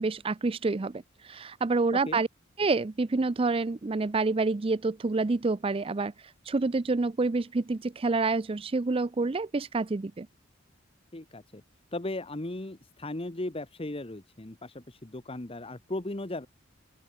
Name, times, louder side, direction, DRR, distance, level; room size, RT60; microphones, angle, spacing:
voice 1, 0.0-2.3 2.6-6.1 6.5-10.3, right 3 dB, 30° right, 0.4 m, -28 dB
voice 2, 11.1-11.6 11.9-16.5, left 2 dB, 30° left, 1.2 m, -37 dB
open air
head